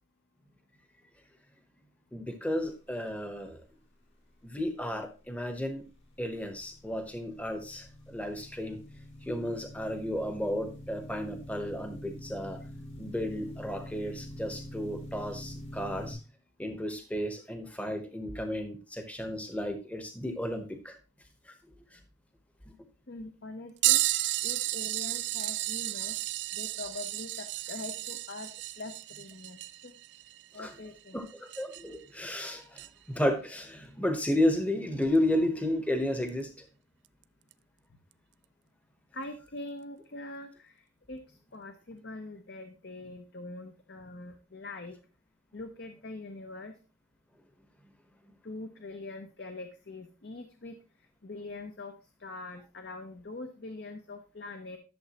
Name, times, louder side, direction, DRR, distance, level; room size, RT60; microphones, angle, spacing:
voice 1, 2.1-3.6 4.4-5.8 6.2-8.8 9.3-12.6 13.0-16.2 16.6-21.0 30.6-30.7 31.1-36.5, left 1 dB, 5° left, 6 dB, 0.9 m, -32 dB
sound 1, 5.3-16.1, left 1 dB, 75° left, 3.1 m, -46 dB
voice 2, 23.1-24.0 24.4-26.2 26.5-28.5 28.8-30.0 30.5-31.2 39.1-40.8 41.1-44.9 45.5-46.7 48.4-50.7 51.2-51.9 52.2-54.8, left 2 dB, 55° left, 6 dB, 0.8 m, -43 dB
sound 2, 23.8-32.0 32.8-32.9 35.1-35.2 36.3-36.4 37.5-37.6, right 17 dB, 60° right, 0.3 m, -32 dB
11.5 x 6.8 x 2.9 m, 0.34 s
head